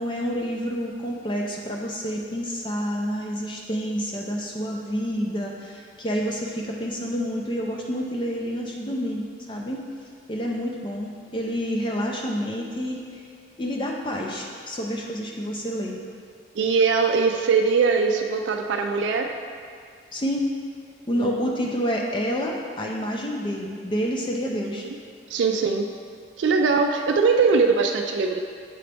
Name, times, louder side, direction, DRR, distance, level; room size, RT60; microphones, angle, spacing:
voice 1, 0.0-9.8 10.3-13.2 13.6-16.0 20.1-20.5 21.1-24.8, equal, 25° left, -1 dB, 0.4 m, -28 dB
voice 2, 16.6-19.3 21.1-21.5 24.6-24.9 25.3-25.9 26.4-28.4, right 5 dB, 80° right, 4 dB, 0.3 m, -21 dB
7.6 x 3.9 x 3.4 m, 2.1 s
head